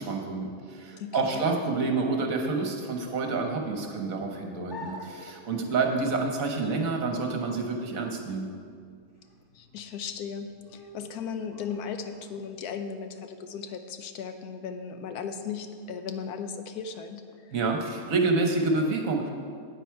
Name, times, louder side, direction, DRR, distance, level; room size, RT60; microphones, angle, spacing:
voice 1, 0.0-8.5 17.5-19.3, right 3 dB, 65° right, 3 dB, 1.4 m, -28 dB
voice 2, 1.0-1.4 9.5-17.6, left 6 dB, 80° left, 8 dB, 1.1 m, -37 dB
sound 1, 4.7-12.6, left 1 dB, 20° left, 0.7 m, -48 dB
9.2 x 8.8 x 4.6 m, 2.1 s
omnidirectional pair, 1.6 m